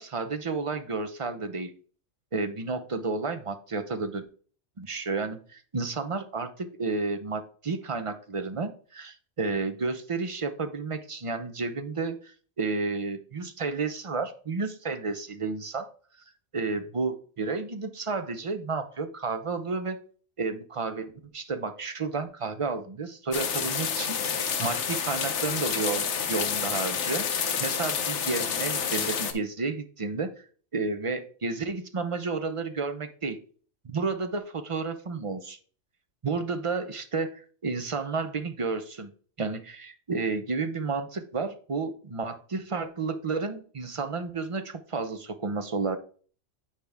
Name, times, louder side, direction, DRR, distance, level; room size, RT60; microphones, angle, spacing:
voice 1, 0.0-1.7 2.3-4.2 4.8-15.9 16.5-20.0 20.4-24.2 24.6-27.3 27.6-30.3 30.7-33.4 33.8-35.6 36.2-39.1 39.4-46.0, right 4 dB, 35° right, 9 dB, 0.6 m, -31 dB
sound 1, 23.3-29.3, left 7 dB, 70° left, 1.1 m, -29 dB
9.0 x 5.0 x 3.4 m, 0.42 s
omnidirectional pair, 1.3 m